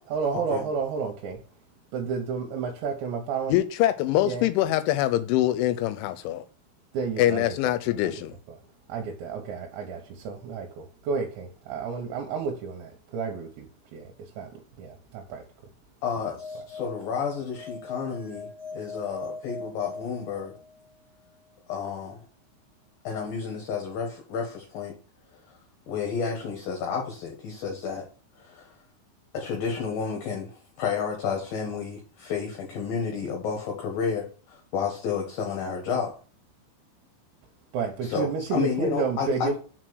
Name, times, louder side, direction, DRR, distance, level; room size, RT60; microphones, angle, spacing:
voice 1, 0.1-1.4 1.9-3.6 4.2-4.5 6.9-7.7 8.0-8.1 8.9-13.7 13.9-14.5 14.8-15.4 37.7-39.6, right 5 dB, 75° right, 3.1 m, -31 dB
voice 2, 3.5-6.4 7.2-8.3, left 13 dB, 85° left, 2.9 m, -24 dB
voice 3, 16.0-20.5 21.7-22.3 23.0-25.0 25.9-28.1 28.4-28.8 29.3-36.1 38.0-39.6, left 6 dB, 65° left, 2.5 m, -31 dB
sound 1, 16.1-20.9, left 4 dB, 5° right, 1.4 m, -41 dB
6.3 x 4.5 x 6.2 m
omnidirectional pair, 5.5 m